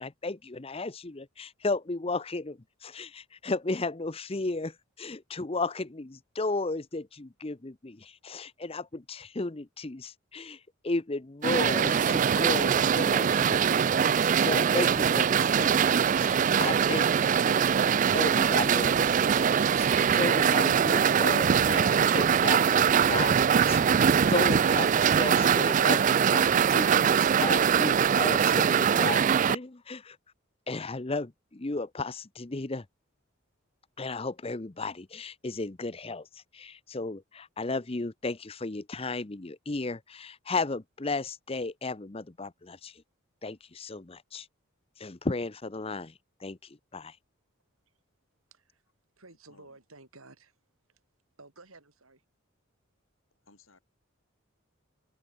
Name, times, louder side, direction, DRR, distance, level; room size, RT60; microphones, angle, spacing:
voice 1, 0.0-15.9 16.2-17.7 18.1-30.2 30.7-32.8 34.0-43.0 43.4-44.5 45.0-46.1 46.4-47.2, left 3 dB, 25° left, 0.7 m, -34 dB
sound 1, 11.4-29.6, right 7 dB, 35° right, 0.3 m, -23 dB
voice 2, 48.5-48.8 49.2-50.6 50.9-51.0 51.4-52.2, right 3 dB, 85° right, 6.4 m, -54 dB
voice 3, 49.3-49.8 53.4-53.8, left 3 dB, 75° left, 7.3 m, -60 dB
open air
head